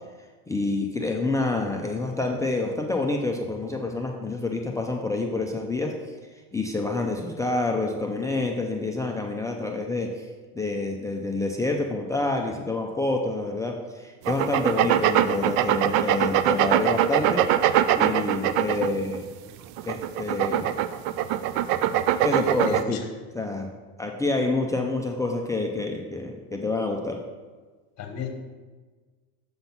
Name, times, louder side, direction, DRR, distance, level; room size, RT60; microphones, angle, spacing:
voice 1, 0.5-5.9 6.5-10.3 10.5-17.4 17.9-19.3 19.8-20.7 22.2-23.0 23.3-23.7 24.0-27.2, left 2 dB, 5° left, 2 dB, 0.4 m, -27 dB
sound 1, 14.2-19.2 19.8-22.8, right 12 dB, 55° right, 0.5 m, -22 dB
voice 2, 22.5-23.0 28.0-28.4, left 6 dB, 35° left, 3 dB, 1.4 m, -34 dB
7.0 x 3.9 x 5.8 m, 1.4 s
supercardioid pair, 110°, 45 cm